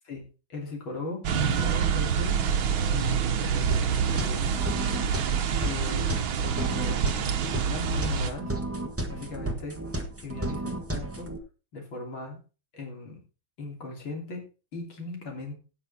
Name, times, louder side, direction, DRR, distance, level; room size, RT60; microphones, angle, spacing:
voice 1, 0.0-2.3 2.9-4.6 5.6-7.0 7.4-8.6 9.1-9.8 10.2-11.3 11.7-12.4 12.7-13.2 13.6-14.4 14.7-15.6, left 2 dB, 70° left, 1 dB, 3.9 m, -38 dB
sound 1, 1.2-8.3, right 7 dB, 75° right, 1.9 m, -26 dB
sound 2, 3.7-11.4, right 1 dB, 10° right, 1.0 m, -33 dB
17.0 x 6.2 x 4.2 m, 0.34 s
omnidirectional pair, 2.3 m